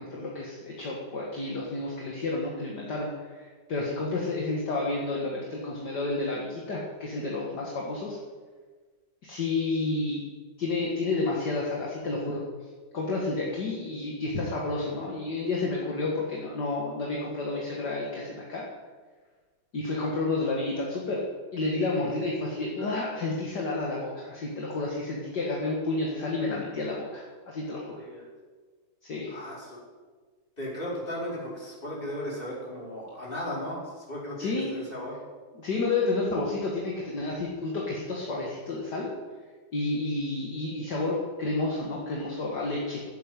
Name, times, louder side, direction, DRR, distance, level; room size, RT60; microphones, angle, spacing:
voice 1, 0.0-8.2 9.2-10.2 10.6-12.4 12.9-18.7 19.7-21.2 21.5-28.0 29.0-29.3 34.4-34.8 35.5-39.1 39.7-43.0, left 3 dB, 50° left, -3 dB, 2.4 m, -30 dB
voice 2, 27.7-28.2 29.3-29.8 30.6-35.1, left 1 dB, 25° left, -6 dB, 4.9 m, -36 dB
13.0 x 8.3 x 9.2 m, 1.4 s
omnidirectional pair, 2.3 m